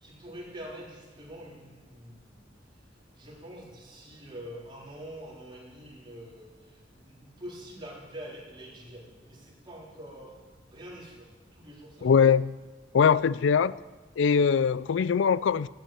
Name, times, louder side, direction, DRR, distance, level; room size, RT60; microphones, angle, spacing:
voice 1, 0.0-2.4 3.2-6.5 6.9-10.4 10.7-12.1, equal, 25° right, -4 dB, 3.3 m, -45 dB
voice 2, 12.0-12.6 12.9-13.7 14.2-15.7, left 6 dB, 90° left, 19 dB, 0.4 m, -22 dB
11.5 x 9.0 x 8.9 m, 1.3 s
head